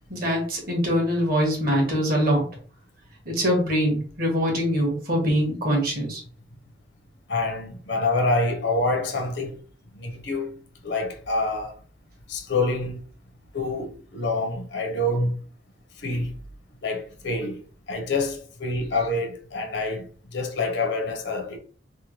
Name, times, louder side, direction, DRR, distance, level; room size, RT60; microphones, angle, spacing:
voice 1, 0.1-2.5 3.2-6.2, equal, 50° right, 1.3 m, -23 dB
voice 2, 7.3-9.6 9.9-10.6 10.8-11.8 12.3-13.0 13.5-15.4 16.0-16.4 16.8-17.6 17.9-21.6, left 2 dB, 65° left, 0.7 m, -27 dB
3.5 x 2.1 x 2.9 m
head